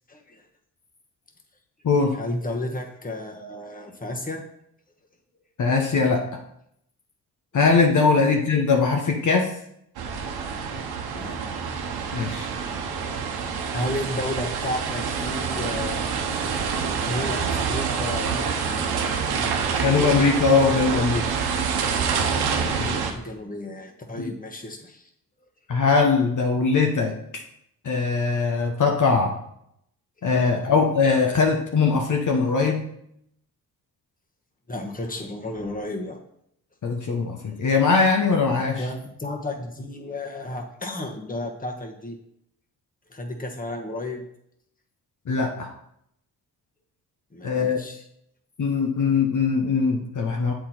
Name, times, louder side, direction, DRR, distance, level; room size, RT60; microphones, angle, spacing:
voice 1, 0.1-0.4 2.1-4.4 8.1-8.3 11.1-12.4 13.7-16.1 17.0-20.2 22.5-25.1 34.7-36.2 38.8-42.2 43.1-44.2 47.3-48.0, left 1 dB, 20° left, 2 dB, 1.5 m, -33 dB
voice 2, 1.8-2.2 5.6-6.2 7.5-9.5 12.1-12.5 19.8-21.2 22.8-22.9 24.2-24.3 25.7-27.4 27.8-29.3 30.2-32.8 36.8-38.9 45.3-45.7 47.4-47.8 48.6-50.5, left 4 dB, 55° left, 1 dB, 1.1 m, -21 dB
sound 1, 10.0-23.1, right 6 dB, 90° right, 1.0 m, -27 dB
7.4 x 4.6 x 4.4 m, 0.74 s
cardioid pair, 60°, 37 cm